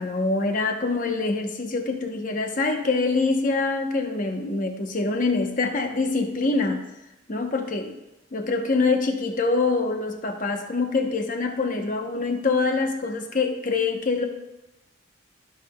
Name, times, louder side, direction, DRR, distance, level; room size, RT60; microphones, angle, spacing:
voice 1, 0.0-6.8 7.3-7.9 8.3-14.3, left 3 dB, 40° left, 4 dB, 0.9 m, -25 dB
16.5 x 5.6 x 2.3 m, 1.0 s
head